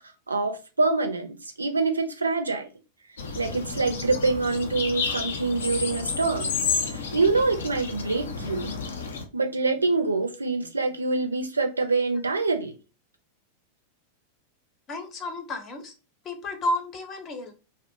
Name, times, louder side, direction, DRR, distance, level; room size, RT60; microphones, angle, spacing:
voice 1, 0.3-2.7 3.3-6.6 6.9-8.8 9.3-12.8, right 3 dB, 80° right, 0.4 m, -25 dB
sound 1, 3.2-9.2, left 5 dB, 65° left, 0.5 m, -31 dB
voice 2, 14.9-15.9 16.2-17.5, left 1 dB, 30° left, 0.7 m, -31 dB
2.7 x 2.0 x 2.6 m
figure-of-eight pair, 90°, 0 cm